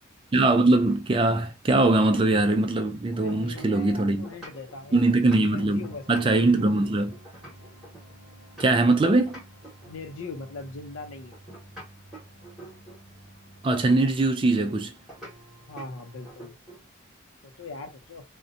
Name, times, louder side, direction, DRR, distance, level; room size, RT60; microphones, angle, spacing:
voice 1, 0.3-4.3 4.9-7.1 8.6-9.4 13.6-14.9, right 2 dB, 25° right, 0.3 m, -22 dB
sound 1, 0.9-2.8 3.1-8.9 9.3-10.4 11.3-13.1 15.1-15.4 15.8-15.9 16.2-16.9, right 1 dB, ahead, 1.2 m, -47 dB
voice 2, 3.1-5.0 5.3-6.6 9.8-11.4 15.7-16.5 17.4-18.2, left 3 dB, 85° left, 0.6 m, -40 dB
sound 2, 4.6-16.3, right 1 dB, 55° left, 1.1 m, -52 dB
2.7 x 2.1 x 2.5 m
head